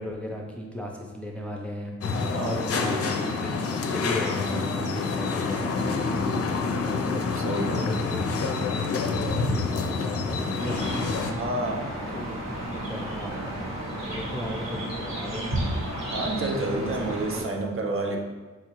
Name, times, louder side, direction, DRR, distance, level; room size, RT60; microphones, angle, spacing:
voice 1, 0.0-2.0 2.4-6.4 7.7-8.2 8.5-11.1 12.1-12.4 12.6-15.8 16.2-17.9, left 1 dB, 5° left, 0 dB, 0.5 m, -37 dB
sound 1, 2.0-11.3, left 4 dB, 55° left, 0.5 m, -27 dB
voice 2, 7.3-7.8 11.4-11.9 16.1-18.2, right 2 dB, 45° right, 1 dB, 0.6 m, -29 dB
sound 2, 10.6-17.4, right 1 dB, 65° right, 1.4 m, -32 dB
4.6 x 2.4 x 3.0 m, 1.3 s
cardioid pair, 70°, 29 cm